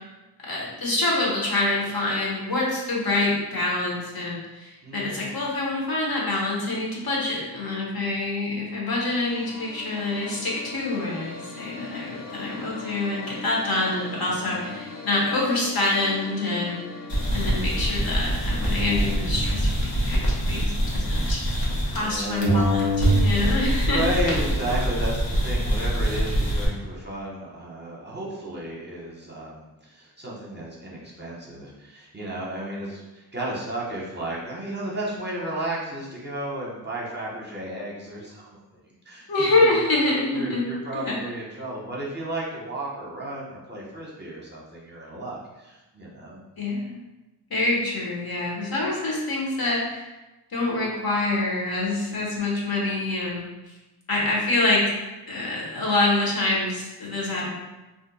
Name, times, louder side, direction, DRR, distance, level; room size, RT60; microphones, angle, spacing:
voice 1, 0.5-16.8 17.3-21.4 21.8-24.0 39.3-40.6 40.9-41.1 46.6-47.0 47.5-50.1 50.5-53.5 54.1-54.9 55.3-57.5, left 2 dB, 55° left, -4 dB, 0.9 m, -26 dB
voice 2, 4.8-5.4 14.2-14.7 21.8-22.6 23.7-38.6 38.8-39.8 40.3-46.4, right 1 dB, 25° right, -6 dB, 0.7 m, -33 dB
sound 1, 8.8-19.0, left 4 dB, 40° left, 0.6 m, -40 dB
sound 2, 17.1-22.1 22.4-26.7, right 1 dB, 85° left, 0.9 m, -24 dB
2.5 x 2.1 x 3.9 m, 1.1 s
wide cardioid pair, 90°, 43 cm